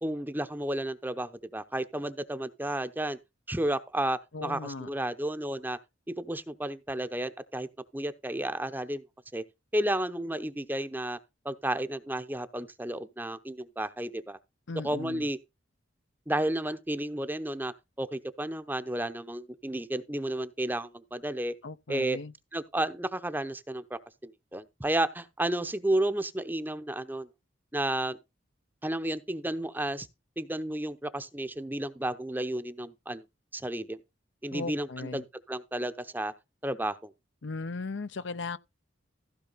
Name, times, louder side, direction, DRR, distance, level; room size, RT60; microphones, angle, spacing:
voice 1, 0.0-3.2 3.5-5.8 6.1-7.7 7.9-9.0 9.3-9.4 9.7-11.2 11.4-14.4 14.8-15.4 16.3-21.6 21.9-22.2 22.5-27.3 27.7-28.2 28.8-30.1 30.4-33.2 33.5-34.0 34.4-36.3 36.6-37.1, right 1 dB, 10° right, 0.7 m, -32 dB
voice 2, 4.3-4.9 14.7-15.3 21.6-22.3 34.5-35.2 37.4-38.6, left 3 dB, 70° left, 0.7 m, -37 dB
15.5 x 5.6 x 4.0 m
head